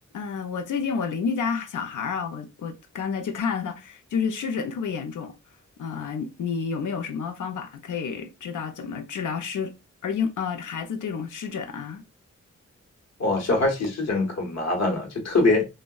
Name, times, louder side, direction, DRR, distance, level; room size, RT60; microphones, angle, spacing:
voice 1, 0.1-5.3 5.8-9.7 10.0-12.0, left 6 dB, 85° left, 0.5 m, -30 dB
voice 2, 13.2-15.6, left 2 dB, 60° left, 0.9 m, -23 dB
3.6 x 2.1 x 2.2 m
wide cardioid pair, 135°, 30 cm